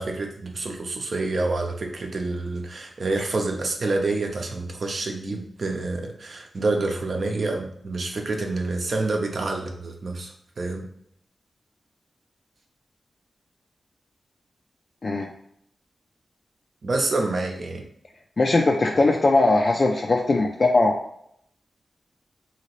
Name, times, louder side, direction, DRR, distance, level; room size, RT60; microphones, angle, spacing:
voice 1, 0.0-10.8 16.8-17.8, right 2 dB, 60° right, 2 dB, 0.6 m, -27 dB
voice 2, 18.4-20.9, left 2 dB, 45° left, 0 dB, 0.4 m, -20 dB
2.9 x 2.8 x 3.0 m, 0.69 s
wide cardioid pair, 90°, 0 cm